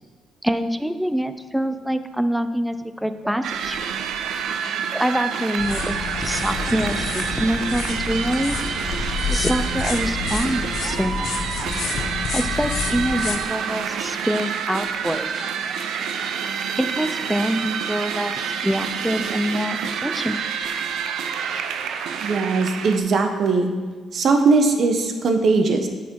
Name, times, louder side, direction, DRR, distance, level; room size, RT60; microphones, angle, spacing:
voice 1, 0.4-3.8 4.9-8.6 9.3-11.5 12.3-15.4 16.7-20.4, equal, 5° right, 10 dB, 0.6 m, -25 dB
sound 1, 3.4-23.0, right 7 dB, 80° right, 0.6 m, -28 dB
sound 2, 5.6-13.4, left 5 dB, 70° left, 0.9 m, -28 dB
voice 2, 22.2-23.7 24.1-25.9, right 4 dB, 55° right, 5 dB, 1.1 m, -19 dB
8.9 x 6.3 x 4.7 m, 1.4 s
cardioid pair, 90°, 0 cm